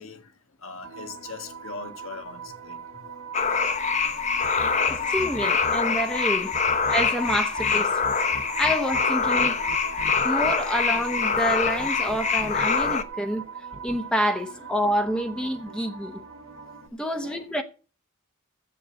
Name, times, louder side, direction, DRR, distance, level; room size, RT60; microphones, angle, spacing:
voice 1, 0.0-3.1 3.9-4.0 4.4-6.5 6.9-7.0 8.2-8.6 9.5-9.7 12.0-12.3 12.5-13.1 15.2-15.3 15.6-15.8 16.6-17.5, left 4 dB, 70° left, 1.6 m, -44 dB
sound 1, 0.8-16.9, right 6 dB, 70° right, 2.3 m, -41 dB
sound 2, 3.3-13.0, left 5 dB, 35° left, 0.9 m, -24 dB
sound 3, 4.4-5.7 6.5-10.5 11.3-12.9 13.7-14.0, right 1 dB, 30° right, 0.8 m, -40 dB
voice 2, 4.8-6.5 6.9-7.9 8.6-9.6 10.2-13.4 13.8-16.2 17.0-17.6, equal, 5° left, 1.0 m, -27 dB
7.7 x 7.7 x 7.7 m
head